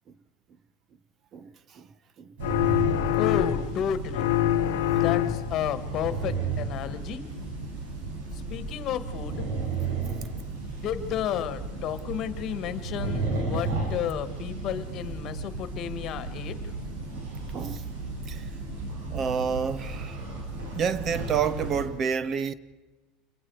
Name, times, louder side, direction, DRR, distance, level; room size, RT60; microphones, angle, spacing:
voice 1, 1.3-1.9 2.2-2.4 17.5-17.9 18.3-18.5 19.1-20.2 20.7-22.5, right 7 dB, 35° right, 0.9 m, -29 dB
sound 1, 2.4-3.8 4.1-5.6, left 13 dB, 85° left, 1.0 m, -25 dB
sound 2, 2.4-21.9, right 3 dB, 75° right, 7.3 m, -34 dB
voice 2, 3.1-4.3 4.9-7.3 8.3-9.5 10.8-16.6, left 9 dB, 45° left, 1.7 m, -32 dB
28.0 x 22.5 x 4.8 m
supercardioid pair, 125°, 0 cm